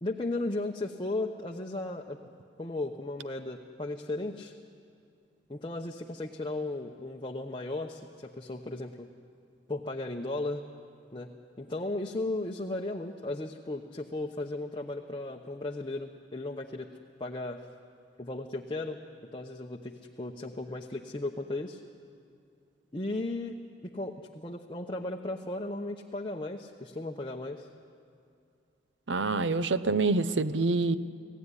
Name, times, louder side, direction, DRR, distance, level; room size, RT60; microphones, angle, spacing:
voice 1, 0.0-2.2 2.6-4.6 5.5-9.1 9.7-10.6 11.1-11.3 11.6-16.9 17.2-17.6 18.2-19.0 19.3-21.8 22.9-23.5 23.8-27.7, left 2 dB, 25° left, 1 dB, 0.9 m, -35 dB
voice 2, 29.1-31.0, right 3 dB, 80° right, 13 dB, 0.8 m, -26 dB
25.5 x 17.0 x 9.8 m, 2.4 s
head